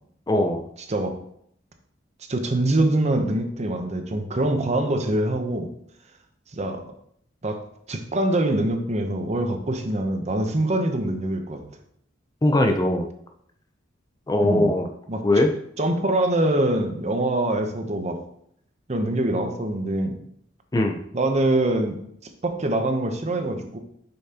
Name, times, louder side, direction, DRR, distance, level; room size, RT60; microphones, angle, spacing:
voice 1, 0.3-0.6 12.4-13.1 14.3-14.9 15.2-15.5 20.7-21.0, left 1 dB, 20° left, 5 dB, 0.5 m, -20 dB
voice 2, 2.3-5.7 6.5-6.8 7.4-7.6 7.9-11.6 14.4-14.7 15.1-15.5 15.8-18.2 18.9-20.2 21.1-22.0 22.4-23.8, right 1 dB, 35° right, 6 dB, 0.7 m, -24 dB
6.6 x 5.6 x 2.8 m, 0.69 s
head